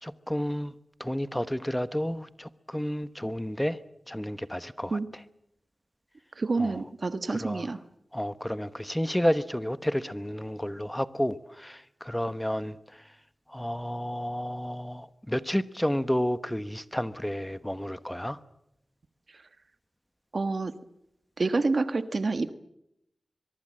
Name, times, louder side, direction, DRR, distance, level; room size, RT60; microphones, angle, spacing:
voice 1, 0.0-0.7 1.0-3.8 4.1-5.0 6.6-6.8 7.3-7.7 8.1-12.8 13.5-18.4, equal, 5° left, 13 dB, 1.1 m, -31 dB
voice 2, 6.4-7.8 20.3-20.7 21.4-22.5, right 3 dB, 60° right, 11 dB, 1.5 m, -28 dB
23.0 x 23.0 x 7.7 m, 0.81 s
cardioid pair, 50°, 0 cm